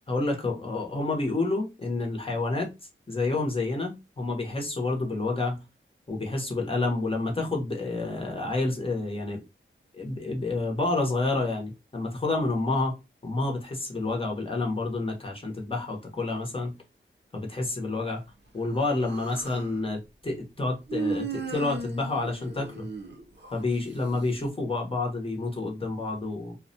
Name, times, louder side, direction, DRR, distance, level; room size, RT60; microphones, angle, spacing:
voice 1, 0.1-2.7 3.1-5.6 6.1-9.4 9.9-12.9 13.2-16.8 17.3-18.2 18.5-22.9 23.5-26.6, left 2 dB, 25° left, 0.8 m, -29 dB
Human voice, 18.8-19.7 20.9-23.6, right 4 dB, 55° right, 0.5 m, -35 dB
2.3 x 2.1 x 2.6 m
wide cardioid pair, 90°, 21 cm